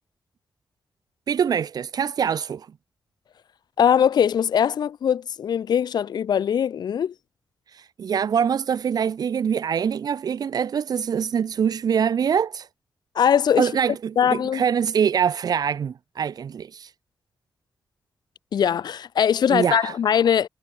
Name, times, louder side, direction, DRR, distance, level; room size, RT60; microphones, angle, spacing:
voice 1, 1.3-2.7 7.7-12.7 13.6-16.9 19.5-19.9, right 7 dB, 70° right, 3.3 m, -24 dB
voice 2, 3.8-7.1 13.1-13.7 14.2-14.6 18.5-20.5, left 8 dB, 90° left, 1.4 m, -21 dB
wide cardioid pair, 175°, 7 cm